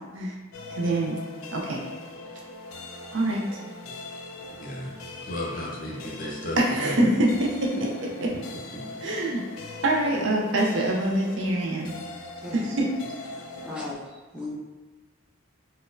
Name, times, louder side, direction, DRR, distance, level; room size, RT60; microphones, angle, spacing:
sound 1, 0.5-14.0, left 2 dB, 85° left, 0.4 m, -41 dB
voice 1, 0.7-1.2 1.5-1.8 3.1-3.6 6.6-7.6 9.0-9.4 9.8-11.9 12.5-12.9, right 1 dB, 60° right, -2 dB, 0.5 m, -24 dB
voice 2, 4.6-4.9 5.2-7.0 8.3-8.4 8.7-8.8, left 1 dB, 40° left, -3 dB, 0.6 m, -34 dB
voice 3, 12.4-12.7 13.3-14.5, left 2 dB, 5° right, -6 dB, 0.5 m, -38 dB
4.0 x 2.1 x 2.5 m, 1.3 s
head